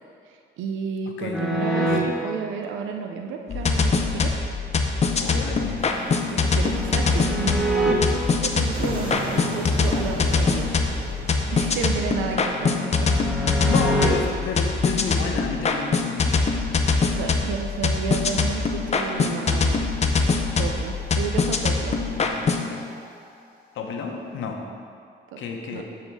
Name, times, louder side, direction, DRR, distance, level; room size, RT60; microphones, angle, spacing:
voice 1, 0.6-4.3 6.3-10.7 11.5-13.1 17.1-19.9 20.6-22.0 25.3-25.4 25.7-25.8, right 6 dB, 85° right, 3 dB, 0.6 m, -32 dB
sound 1, 1.3-2.0 5.4-7.9 11.0-14.1, right 1 dB, ahead, 1.1 m, -27 dB
Linn loop, 3.5-22.7, left 4 dB, 35° left, 0.6 m, -23 dB
voice 2, 5.2-5.8 13.6-16.5 22.1-22.9 23.7-24.6 25.4-25.8, left 5 dB, 80° left, 2 dB, 0.9 m, -31 dB
sound 2, 5.8-23.6, right 2 dB, 25° right, 1.8 m, -40 dB
7.0 x 3.7 x 6.0 m, 2.3 s
cardioid pair, 90°, 20 cm